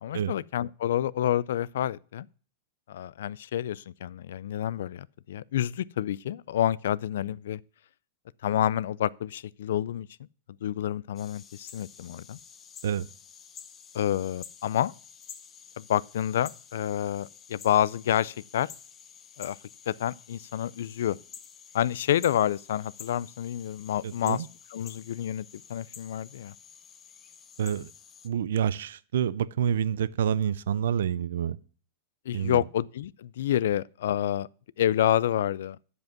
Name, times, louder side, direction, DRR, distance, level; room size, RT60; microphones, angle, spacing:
voice 1, 0.0-2.3 2.9-7.6 8.4-10.1 10.6-12.4 13.9-14.9 15.8-18.7 19.4-19.6 19.9-21.2 21.7-26.5 32.3-34.5 34.8-35.8, left 11 dB, 75° left, 0.3 m, -28 dB
sound 1, 11.2-28.3, left 7 dB, 20° left, 0.7 m, -50 dB
voice 2, 24.0-24.5 27.6-27.9 28.2-31.6 32.3-32.6, right 9 dB, 80° right, 0.4 m, -28 dB
9.5 x 5.3 x 5.9 m
supercardioid pair, 150°, 0 cm